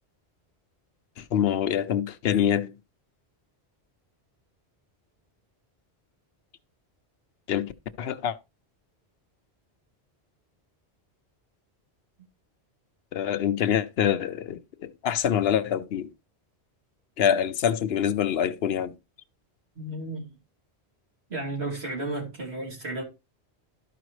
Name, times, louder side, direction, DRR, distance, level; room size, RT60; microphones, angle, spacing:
voice 1, 1.2-2.7 7.5-7.7 8.0-8.4 13.1-16.1 17.2-18.9, left 9 dB, 70° left, 0.8 m, -25 dB
voice 2, 19.7-20.4 21.3-23.0, right 2 dB, 70° right, 3.2 m, -33 dB
12.5 x 5.0 x 3.1 m
omnidirectional pair, 1.1 m